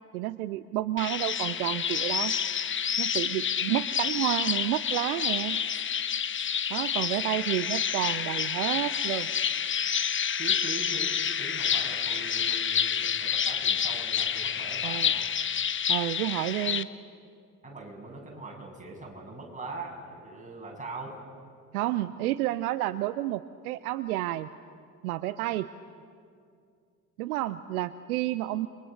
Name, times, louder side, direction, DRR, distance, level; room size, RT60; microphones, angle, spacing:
voice 1, 0.1-2.4 3.0-5.6 6.7-9.3 14.8-15.1 15.9-16.9 21.7-24.5 25.0-25.7 27.2-28.7, right 15 dB, 70° right, 15 dB, 0.8 m, -30 dB
sound 1, 1.0-16.8, left 8 dB, 25° left, 1.0 m, -29 dB
voice 2, 10.4-15.3 17.6-21.2, right 3 dB, 15° right, -1 dB, 7.9 m, -42 dB
29.0 x 23.0 x 6.5 m, 2.3 s
figure-of-eight pair, 60°, 46 cm